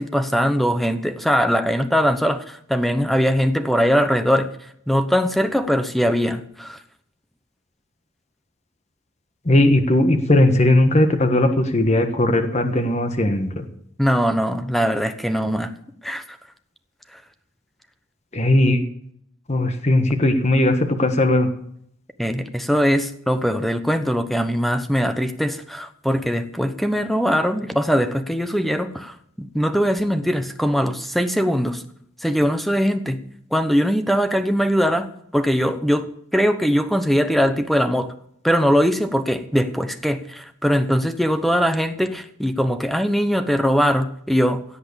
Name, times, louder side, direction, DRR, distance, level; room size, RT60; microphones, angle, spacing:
voice 1, 0.0-4.5 4.9-6.8 14.0-15.7 16.0-16.2 17.1-17.2 22.2-31.8 32.2-33.2 33.5-35.1 35.3-38.1 38.4-44.6, equal, ahead, 9 dB, 0.9 m, -21 dB
voice 2, 9.4-13.7 18.3-18.8 19.5-21.5, left 1 dB, 35° left, 7 dB, 1.3 m, -18 dB
17.0 x 7.9 x 7.0 m, 0.69 s
head